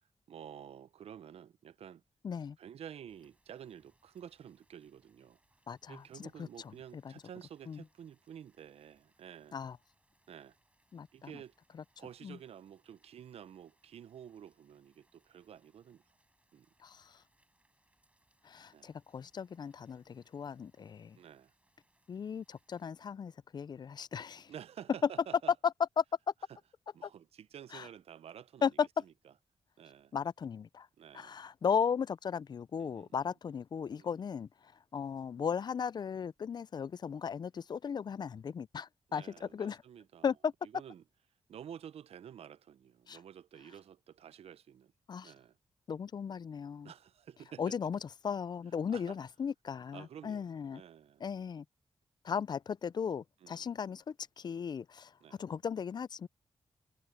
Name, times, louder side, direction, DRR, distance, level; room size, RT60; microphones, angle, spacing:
voice 1, 0.3-2.0 2.6-5.4 5.9-9.6 10.3-10.6 11.1-11.5 12.0-16.0 16.5-16.7 18.7-18.9 21.2-21.5 24.5-25.5 26.9-28.7 29.0-29.1 29.8-30.1 31.0-31.4 32.8-33.3 34.0-34.2 39.1-40.3 40.6-41.0 41.5-44.9 45.2-45.6 46.8-47.8 48.9-49.2 49.9-51.2 53.4-53.7 55.2-55.4, right 9 dB, 80° right, 0.6 m, -51 dB
voice 2, 2.2-2.6 5.7-7.1 7.7-7.8 9.5-9.8 10.9-11.3 12.2-12.4 16.8-17.2 18.4-21.2 22.1-24.5 25.6-26.0 27.0-27.1 27.7-27.9 28.6-29.0 30.1-30.9 31.1-39.8 40.2-40.5 43.1-43.2 45.1-45.3 45.9-46.9 47.6-50.8 51.2-51.6 52.2-55.1 55.4-56.3, left 7 dB, 45° left, 0.3 m, -36 dB
sound 1, 3.1-22.9, right 1 dB, 15° right, 4.9 m, -75 dB
wide cardioid pair, 115°, 10 cm